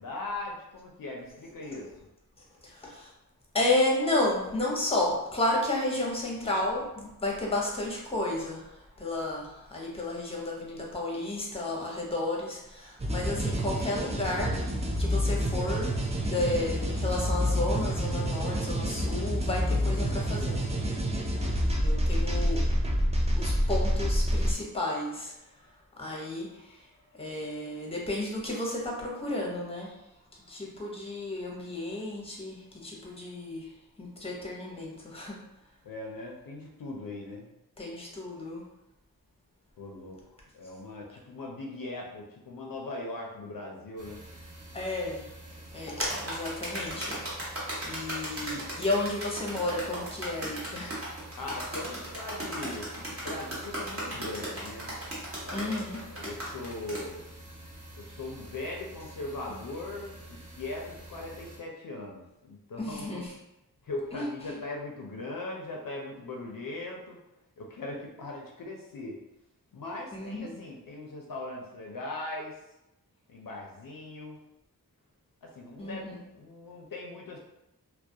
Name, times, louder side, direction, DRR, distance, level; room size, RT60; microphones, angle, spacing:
voice 1, 0.0-1.9 21.8-22.6 35.8-37.5 39.8-40.2 40.5-44.2 51.4-54.9 55.4-57.2 58.0-63.2 63.8-67.2 67.6-69.2 69.7-72.6 73.3-74.4 75.4-77.4, left 2 dB, 65° left, 0 dB, 0.5 m, -40 dB
voice 2, 2.6-3.1 3.5-20.6 21.8-22.6 23.4-25.3 26.0-26.9 27.1-30.0 30.5-33.7 34.0-35.4 37.8-38.7 44.7-45.3 45.7-51.0 55.5-56.0 62.8-63.3 64.1-64.6 70.1-70.6 75.8-76.2, left 2 dB, 15° left, -3 dB, 0.7 m, -32 dB
sound 1, 13.0-24.5, equal, 20° right, 0.4 m, -28 dB
sound 2, 44.0-61.6, right 1 dB, 55° right, 0.7 m, -48 dB
sound 3, 46.0-57.0, right 1 dB, 40° right, 0.9 m, -36 dB
2.3 x 2.1 x 2.6 m, 0.92 s
wide cardioid pair, 55°, 37 cm